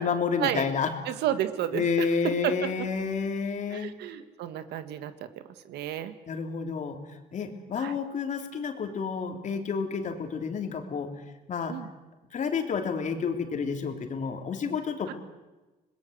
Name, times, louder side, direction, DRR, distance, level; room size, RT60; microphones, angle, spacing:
voice 1, 0.0-0.9 1.7-4.0 6.3-7.0 7.3-11.1 11.5-11.7 12.3-15.1, left 6 dB, 45° left, 5 dB, 3.2 m, -30 dB
voice 2, 1.1-2.7 3.7-6.1 7.8-8.0 11.7-11.9 15.1-15.2, right 11 dB, 80° right, 10 dB, 1.8 m, -32 dB
26.5 x 20.5 x 8.0 m, 1.2 s
cardioid pair, 110°, 17 cm